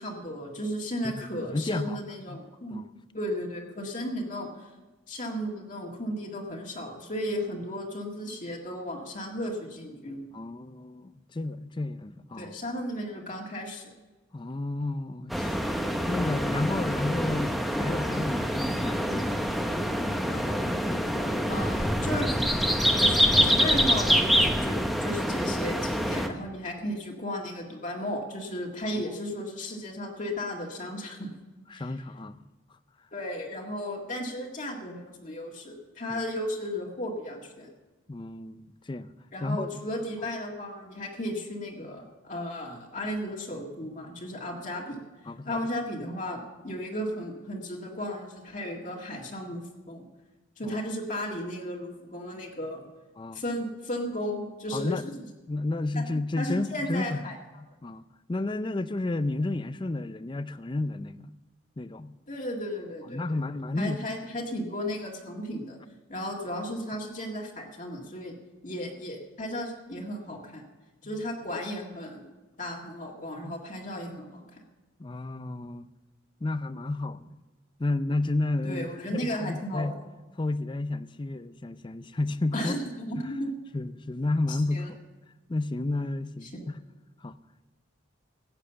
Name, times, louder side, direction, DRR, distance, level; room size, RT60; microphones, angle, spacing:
voice 1, 0.0-2.8 3.1-4.7 5.1-10.3 12.4-13.9 21.5-22.3 23.0-31.3 31.7-31.8 33.1-37.7 39.3-45.0 45.5-50.1 50.6-52.8 53.3-54.9 56.0-56.1 56.4-57.4 62.3-63.4 63.8-65.8 66.1-68.3 68.6-70.6 71.0-72.3 72.6-74.6 78.6-79.9 82.5-83.5 84.5-84.9 86.4-86.7, left 1 dB, 40° left, 1.9 m, -35 dB
voice 2, 1.0-2.0 2.3-2.4 2.7-2.8 10.3-12.6 14.3-15.8 16.1-19.5 19.8-21.6 26.0-26.1 28.9-29.1 31.7-32.5 36.1-36.2 38.1-39.1 39.4-39.8 45.3-45.6 50.6-50.8 53.2-53.4 54.7-55.1 55.5-57.2 57.8-58.0 58.3-61.3 61.8-62.2 63.1-64.0 73.4-73.6 75.0-75.9 76.4-77.4 77.8-79.9 80.4-82.7 83.2-83.3 83.7-85.0 85.5-86.8 87.2-87.4, left 2 dB, 25° left, 0.4 m, -32 dB
sound 1, 15.3-26.3, equal, ahead, 0.8 m, -26 dB
15.0 x 9.0 x 6.9 m
head